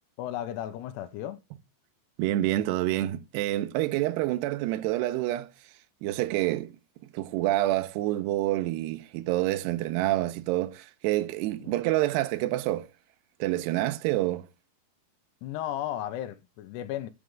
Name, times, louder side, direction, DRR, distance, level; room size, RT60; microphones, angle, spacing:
voice 1, 0.2-1.4 11.6-11.8 15.4-17.1, left 12 dB, 90° left, 2.8 m, -34 dB
voice 2, 2.2-5.5 6.0-6.7 7.1-12.9 13.4-14.5, right 15 dB, 85° right, 2.7 m, -27 dB
11.0 x 5.0 x 3.5 m
omnidirectional pair, 4.8 m